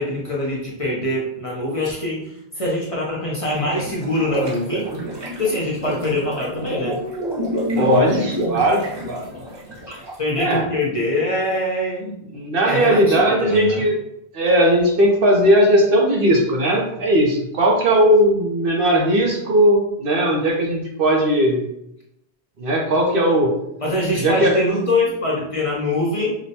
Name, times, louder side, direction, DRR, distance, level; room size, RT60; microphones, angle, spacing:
voice 1, 0.0-4.9 5.4-7.0 7.7-8.2 9.9-12.1 12.7-13.8 23.8-26.3, left 1 dB, 40° left, -4 dB, 0.7 m, -24 dB
sound 1, 3.5-10.3, equal, 30° right, 0.6 m, -28 dB
voice 2, 7.8-9.3 10.4-10.6 12.3-13.9 14.3-21.6 22.6-23.5 24.1-24.5, right 1 dB, 65° right, 0 dB, 0.9 m, -17 dB
5.0 x 2.2 x 2.7 m, 0.80 s
omnidirectional pair, 1.0 m